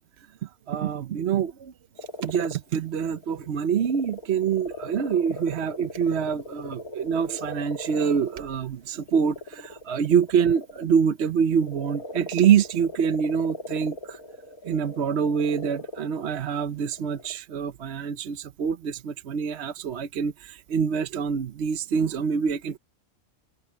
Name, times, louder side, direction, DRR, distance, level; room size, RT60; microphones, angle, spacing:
voice 1, 0.4-1.7 2.2-14.2 14.6-22.8, right 7 dB, 55° right, 0.9 m, -25 dB
sound 1, 2.0-2.6 2.9-8.6 9.0-10.9 11.4-17.4, left 1 dB, 85° left, 2.8 m, -39 dB
omnidirectional pair, 1.5 m